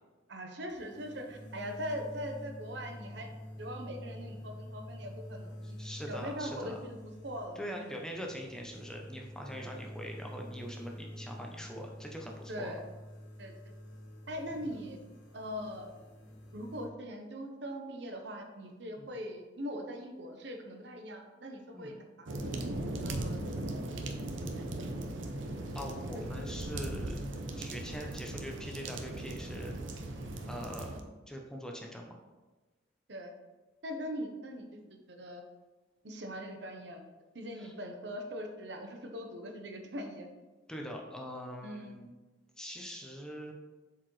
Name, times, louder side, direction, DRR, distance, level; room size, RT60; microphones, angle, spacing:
voice 1, 0.3-3.3 3.6-5.5 6.1-7.0 7.2-7.6 9.5-9.7 12.5-12.8 13.4-13.5 14.3-15.0 15.3-15.9 16.5-22.3 23.0-24.0 24.3-24.9 33.1-33.3 33.8-35.4 36.0-37.0 37.3-40.3 41.6-42.0, equal, 65° right, 4 dB, 0.8 m, -41 dB
sound 1, 0.7-16.9, equal, 85° left, 1.6 m, -47 dB
voice 2, 5.6-6.8 7.6-12.7 14.5-14.8 19.0-19.1 21.7-22.0 25.7-27.1 27.6-29.7 30.5-30.9 31.3-32.2 37.6-37.7 40.7-42.1 42.6-43.5, equal, 5° left, 1 dB, 0.6 m, -43 dB
sound 2, 22.3-31.0, right 1 dB, 90° right, 0.7 m, -38 dB
7.5 x 4.7 x 3.2 m, 1.2 s
head